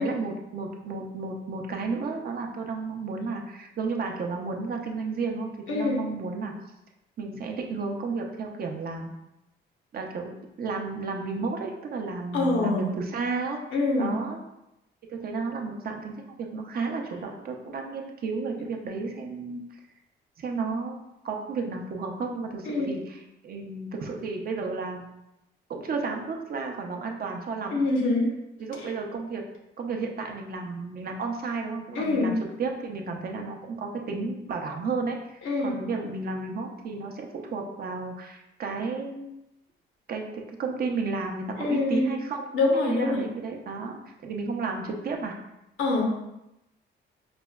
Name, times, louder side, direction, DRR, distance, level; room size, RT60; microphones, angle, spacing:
voice 1, 0.0-6.5 7.2-9.1 9.9-13.6 14.0-14.4 15.1-19.6 20.4-25.0 25.7-27.8 28.6-29.4 29.8-39.3 40.1-42.5 42.7-45.4, right 4 dB, 50° right, 2 dB, 0.5 m, -32 dB
voice 2, 5.7-6.0 12.3-12.9 13.7-14.1 22.7-22.9 27.7-28.3 31.9-32.3 35.4-35.7 41.6-42.2 42.5-43.2 45.8-46.1, left 3 dB, 80° left, -1 dB, 0.9 m, -25 dB
4.9 x 2.1 x 2.3 m, 0.90 s
cardioid pair, 90°, 20 cm